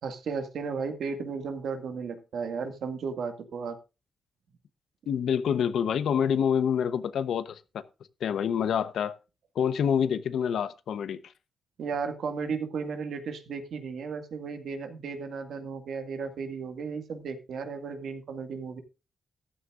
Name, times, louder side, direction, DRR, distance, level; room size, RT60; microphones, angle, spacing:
voice 1, 0.0-3.8 11.8-18.8, right 5 dB, 85° right, 2.0 m, -34 dB
voice 2, 5.1-7.8 8.2-9.2 9.5-11.2, left 8 dB, 90° left, 1.0 m, -27 dB
14.0 x 13.0 x 2.6 m
wide cardioid pair, 115°, 0 cm